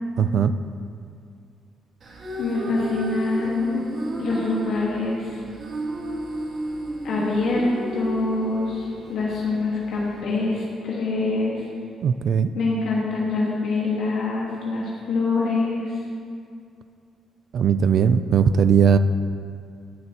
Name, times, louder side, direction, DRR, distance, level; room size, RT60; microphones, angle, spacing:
voice 1, 0.2-0.5 12.0-12.5 17.5-19.0, right 7 dB, 65° right, 12 dB, 0.3 m, -18 dB
sound 1, 2.0-10.2, right 1 dB, 50° right, 2.5 m, -33 dB
voice 2, 2.4-3.8 4.2-5.4 7.0-11.6 12.5-15.9, left 3 dB, 75° left, -4 dB, 1.5 m, -25 dB
15.0 x 7.8 x 2.9 m, 2.3 s
cardioid pair, 90°, 0 cm